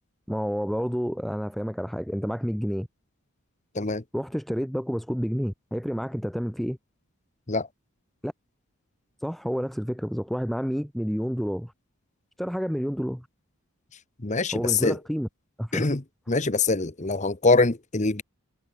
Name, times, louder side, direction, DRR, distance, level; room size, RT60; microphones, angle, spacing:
voice 1, 0.3-2.9 4.1-6.8 8.2-8.3 9.2-11.7 12.4-13.3 14.5-15.3 15.6-15.9, equal, ahead, 4.9 m, -29 dB
voice 2, 14.2-15.0 15.7-16.0 16.3-18.2, left 3 dB, 30° left, 1.1 m, -24 dB
head